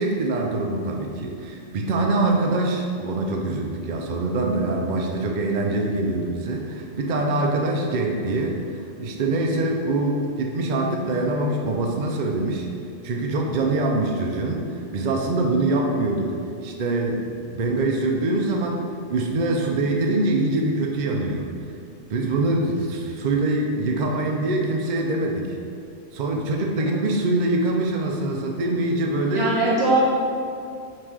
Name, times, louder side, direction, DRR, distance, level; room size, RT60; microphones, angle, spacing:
voice 1, 0.0-8.6 9.0-12.7 13.0-16.4 16.6-21.5 22.1-25.6 26.1-29.5, right 2 dB, 50° right, 1 dB, 0.6 m, -24 dB
voice 2, 29.3-30.0, right 2 dB, 20° right, -8 dB, 1.4 m, -22 dB
5.3 x 3.3 x 5.5 m, 2.4 s
omnidirectional pair, 1.4 m